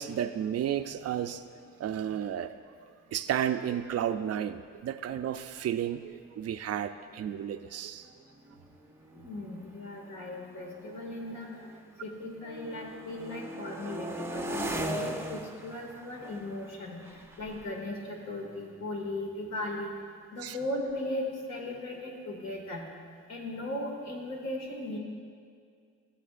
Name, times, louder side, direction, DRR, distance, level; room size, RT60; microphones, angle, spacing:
voice 1, 0.0-1.4 1.8-2.5 3.1-8.1 20.4-20.6, right 10 dB, 55° right, 9 dB, 0.5 m, -32 dB
sound 1, 7.0-7.3 8.1-12.0 12.3-19.0, right 1 dB, 10° right, 0.7 m, -40 dB
voice 2, 9.1-11.5 12.0-19.9 20.3-22.9 23.3-25.0, left 1 dB, 60° left, 0 dB, 2.1 m, -37 dB
18.0 x 7.3 x 2.5 m, 2.2 s
cardioid pair, 90°, 30 cm